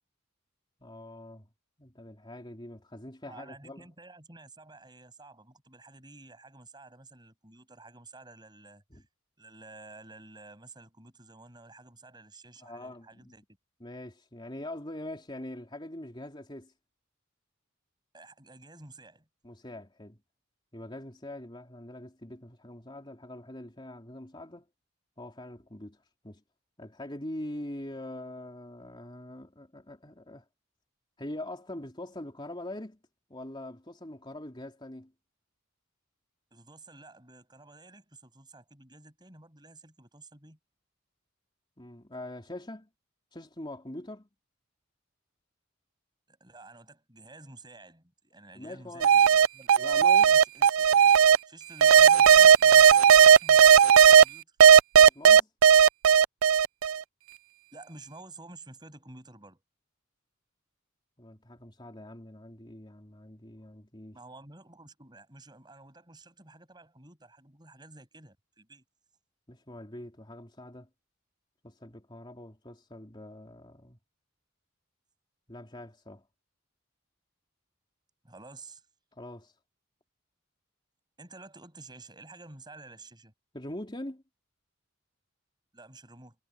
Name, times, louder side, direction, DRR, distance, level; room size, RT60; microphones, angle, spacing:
voice 1, 0.8-1.4 1.8-3.8 8.9-9.0 12.6-13.3 13.8-16.7 19.4-20.2 20.7-24.7 25.2-26.0 26.2-26.4 26.8-30.4 31.2-33.0 33.3-35.1 41.8-42.9 43.3-44.3 48.5-49.1 49.8-50.3 55.0-55.5 61.2-64.2 69.5-70.9 71.6-74.0 75.5-76.2 79.1-79.5 83.5-84.2, left 1 dB, 25° left, 3.6 m, -43 dB
voice 2, 3.3-9.0 9.4-13.4 18.1-19.3 36.5-40.6 46.3-49.7 50.2-51.2 51.5-54.6 57.7-59.6 64.1-68.8 78.2-78.9 81.2-83.3 85.7-86.4, right 2 dB, 20° right, 6.9 m, -51 dB
sound 1, 49.0-51.4 51.8-54.2 54.6-57.0, right 8 dB, 80° right, 0.3 m, -16 dB
head